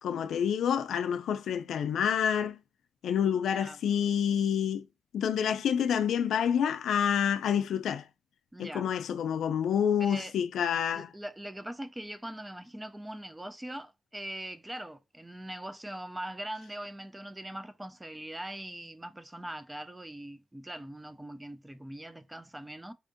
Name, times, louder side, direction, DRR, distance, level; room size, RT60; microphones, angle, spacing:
voice 1, 0.0-2.6 3.0-4.9 5.1-8.1 8.6-11.1, left 8 dB, 75° left, 0.3 m, -28 dB
voice 2, 8.5-8.9 10.0-10.3 10.9-22.9, right 1 dB, 10° right, 0.3 m, -41 dB
4.3 x 2.5 x 2.5 m
cardioid pair, 115°, 0 cm